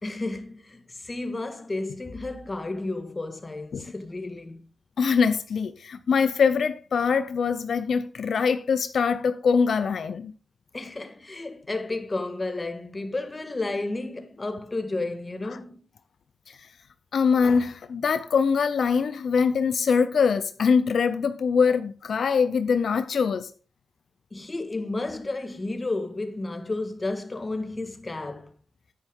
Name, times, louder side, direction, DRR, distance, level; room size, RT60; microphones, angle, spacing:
voice 1, 0.0-4.6 10.7-15.8 24.3-28.5, left 2 dB, 30° left, 1.6 m, -32 dB
voice 2, 5.0-10.3 16.5-16.7 17.1-23.5, left 5 dB, 75° left, 0.7 m, -23 dB
10.0 x 9.1 x 3.7 m
cardioid pair, 85°, 0 cm